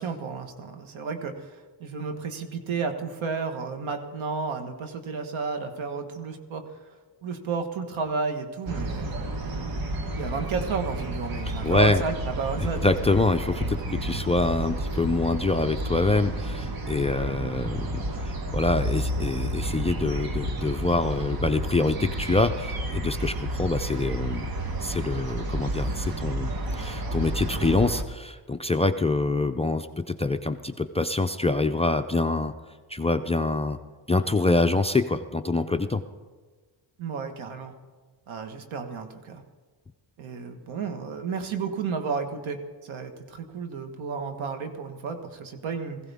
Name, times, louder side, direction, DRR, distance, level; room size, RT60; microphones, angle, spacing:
voice 1, 0.0-6.6 7.2-9.8 10.2-12.8 37.0-37.7 38.3-39.4 40.2-46.0, right 5 dB, 80° right, 6 dB, 1.6 m, -32 dB
sound 1, 8.7-28.0, right 1 dB, 50° right, 1.3 m, -31 dB
voice 2, 11.4-12.0 12.6-24.5 24.8-32.5 32.9-33.8 34.1-36.0, left 2 dB, 15° left, 10 dB, 0.4 m, -25 dB
20.5 x 15.5 x 3.5 m, 1.4 s
cardioid pair, 120°, 47 cm